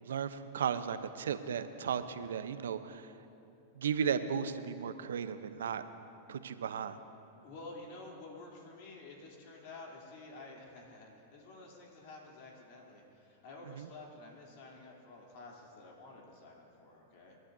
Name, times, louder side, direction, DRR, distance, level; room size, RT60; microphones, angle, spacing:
voice 1, 0.0-3.1 3.8-5.8 6.3-7.0 13.8-13.9, right 7 dB, 80° right, 11 dB, 0.7 m, -35 dB
voice 2, 7.4-17.4, left 2 dB, 60° left, -1 dB, 3.0 m, -51 dB
26.0 x 11.5 x 2.7 m, 2.8 s
hypercardioid pair, 105°, 0 cm